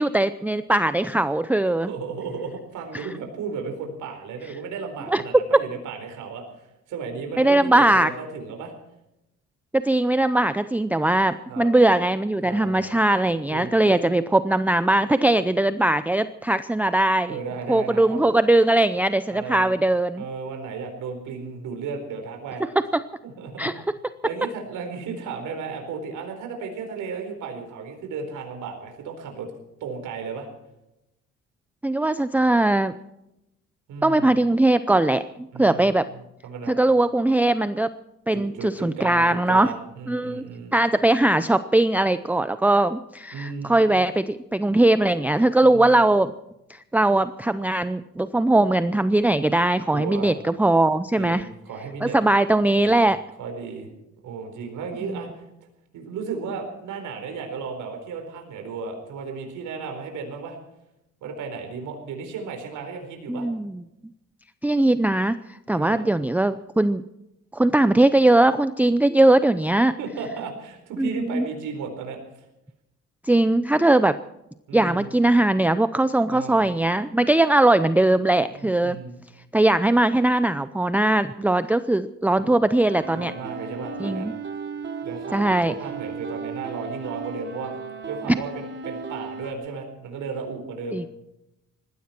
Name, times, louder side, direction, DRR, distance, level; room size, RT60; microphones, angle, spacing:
voice 1, 0.0-1.9 2.9-3.1 5.1-5.2 7.4-8.1 9.7-17.4 17.7-20.2 23.6-23.7 31.8-32.9 34.0-35.2 35.6-36.1 36.7-37.9 38.3-39.7 40.1-40.4 40.7-46.3 46.7-51.5 52.0-53.2 63.3-63.8 64.6-65.4 65.7-67.0 67.5-69.9 71.0-71.5 73.2-74.1 74.7-79.0 79.5-83.3 84.0-84.3 85.3-85.7 90.9-91.1, right 2 dB, 5° right, 12 dB, 0.6 m, -20 dB
voice 2, 1.9-8.7 11.5-11.7 12.4-13.0 13.5-14.0 15.3-15.4 17.3-18.2 19.3-19.7 20.2-22.6 23.2-23.7 24.2-29.5 29.8-30.5 33.9-34.3 35.5-35.9 36.4-36.8 38.3-40.7 43.3-43.8 45.6-46.0 49.9-50.4 51.2-52.2 52.8-53.0 53.4-53.9 54.2-55.4 55.9-60.6 61.2-63.5 65.7-66.1 69.9-72.2 74.7-75.1 76.3-76.6 78.5-79.2 82.4-82.5 83.1-84.3 85.0-87.8 88.1-91.0, right 5 dB, 85° right, 4 dB, 4.4 m, -34 dB
sound 1, 82.9-89.5, right 4 dB, 40° right, 2.9 m, -35 dB
19.5 x 15.5 x 4.5 m, 0.87 s
cardioid pair, 90°, 30 cm